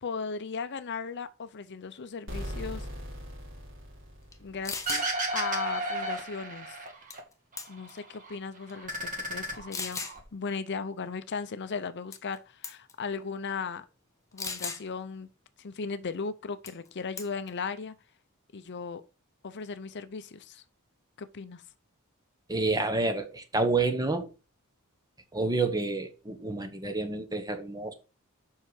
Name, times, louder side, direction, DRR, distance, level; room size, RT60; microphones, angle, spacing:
voice 1, 0.0-2.9 4.4-5.1 5.3-6.8 7.7-8.9 9.3-10.1 10.3-13.8 14.3-15.3 15.6-17.9 18.5-19.0 19.4-20.6 21.2-21.6, left 5 dB, 55° left, 0.6 m, -37 dB
sound 1, 2.3-5.0, equal, 60° right, 3.7 m, -40 dB
sound 2, 4.3-4.4 4.6-5.1 7.1-7.3 7.6-8.0 8.7-8.8 9.7-10.2 12.1-12.4 12.6-12.9 14.4-14.8 16.7-16.9 17.2-17.5, left 4 dB, 15° left, 1.1 m, -36 dB
sound 3, 4.9-7.2 7.5-8.4 8.7-10.2, right 2 dB, 40° right, 2.1 m, -33 dB
voice 2, 22.5-24.3 25.3-27.9, right 3 dB, 15° right, 1.2 m, -29 dB
7.3 x 5.6 x 4.9 m
head